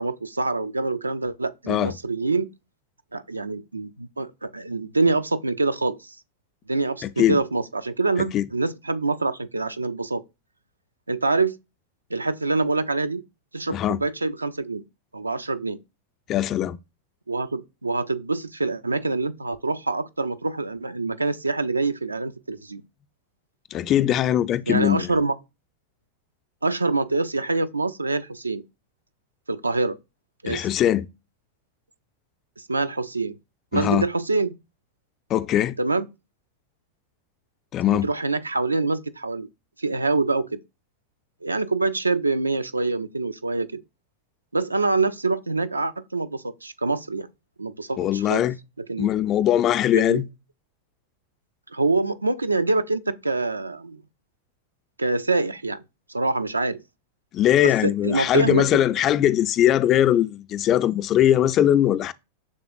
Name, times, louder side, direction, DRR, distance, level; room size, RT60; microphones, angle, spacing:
voice 1, 0.0-2.5 3.1-6.2 6.7-10.2 11.1-11.6 12.1-13.2 13.5-14.8 15.1-15.8 17.3-22.8 24.7-25.4 26.6-28.6 29.5-30.0 30.4-30.6 32.6-33.4 33.7-34.5 35.8-36.1 37.9-39.5 39.8-40.6 41.4-43.8 44.5-47.3 47.6-48.5 48.9-49.1 49.9-50.2 51.7-54.0 55.0-55.8 56.1-56.8 57.6-58.7, right 3 dB, 80° right, 0.3 m, -25 dB
voice 2, 7.0-7.4 8.2-8.5 13.7-14.0 16.3-16.8 23.7-25.1 30.5-31.1 33.7-34.1 35.3-35.8 37.7-38.1 48.0-48.6 49.0-50.3 57.3-62.1, left 11 dB, 35° left, 0.3 m, -21 dB
6.4 x 3.4 x 2.2 m
figure-of-eight pair, 90°, 0 cm